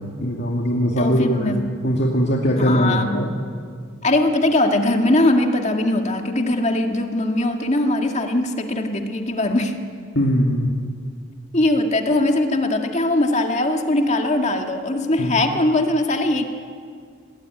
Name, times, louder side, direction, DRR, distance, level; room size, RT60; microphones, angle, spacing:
voice 1, 0.2-3.3 10.2-10.7 15.2-15.4, equal, 55° left, -1 dB, 2.3 m, -20 dB
voice 2, 1.0-1.7 2.6-3.3 4.0-9.8 11.5-16.4, left 1 dB, 35° left, 4 dB, 2.0 m, -20 dB
27.5 x 19.5 x 9.4 m, 2.2 s
head